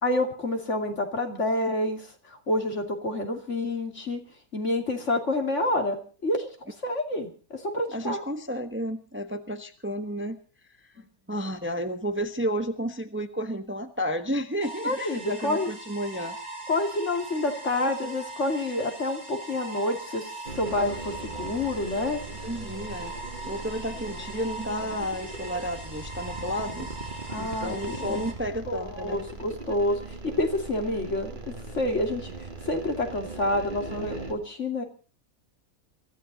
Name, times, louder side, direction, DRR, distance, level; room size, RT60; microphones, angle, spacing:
voice 1, 0.0-2.1 2.5-4.2 4.5-8.2 14.8-15.7 16.7-22.2 27.3-28.3 28.7-32.3 32.6-34.8, left 1 dB, 55° left, 4 dB, 3.0 m, -28 dB
voice 2, 7.9-10.4 11.3-16.4 22.3-23.1 23.5-26.9 27.4-29.2, equal, 10° right, 7 dB, 1.1 m, -32 dB
sound 1, 14.6-28.3, right 2 dB, 75° right, 4.2 m, -41 dB
sound 2, 20.5-34.3, right 3 dB, 35° right, 2.2 m, -39 dB
24.0 x 14.5 x 4.1 m, 0.39 s
omnidirectional pair, 1.5 m